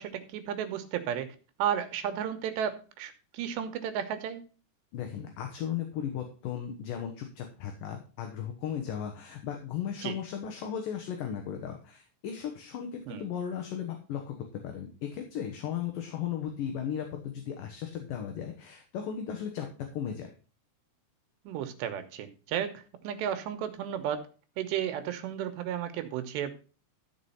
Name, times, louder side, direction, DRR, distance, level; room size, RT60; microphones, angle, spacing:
voice 1, 0.0-4.4 10.0-10.2 13.1-13.2 21.5-24.3 24.6-26.5, right 9 dB, 85° right, 8 dB, 3.2 m, -33 dB
voice 2, 4.9-19.7 19.9-20.3, left 9 dB, 65° left, 4 dB, 2.5 m, -36 dB
13.5 x 4.9 x 5.6 m, 0.36 s
omnidirectional pair, 4.9 m